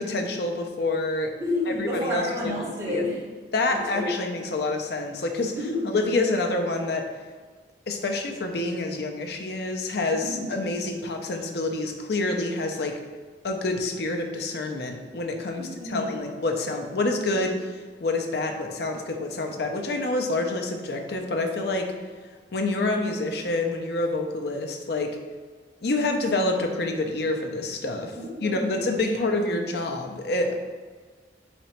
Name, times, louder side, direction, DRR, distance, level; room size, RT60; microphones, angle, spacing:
voice 1, 0.0-1.3 1.8-2.5 2.9-3.1 3.5-5.5 5.9-7.1 7.9-13.0 13.4-21.9 22.2-25.1 25.8-30.6, left 2 dB, 65° left, 4 dB, 0.5 m, -27 dB
voice 2, 1.4-3.2 3.7-4.0 5.5-6.0 10.2-10.7 15.6-16.2 28.2-29.0, left 1 dB, 15° right, -7 dB, 1.2 m, -30 dB
4.2 x 2.9 x 4.3 m, 1.5 s
head